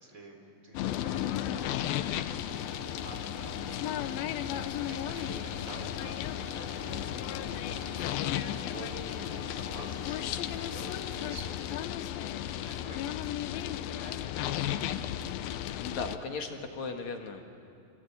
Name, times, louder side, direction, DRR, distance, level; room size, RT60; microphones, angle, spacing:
voice 1, 0.0-4.0 4.7-7.1 7.5-14.8, right 1 dB, 20° right, 2 dB, 4.3 m, -49 dB
sound 1, 0.8-16.2, left 11 dB, 80° left, 2.6 m, -34 dB
sound 2, 2.5-11.5, right 10 dB, 75° right, 3.1 m, -51 dB
voice 2, 15.8-17.5, left 4 dB, 60° left, 4 dB, 2.6 m, -37 dB
26.5 x 25.5 x 8.5 m, 2.6 s
omnidirectional pair, 4.2 m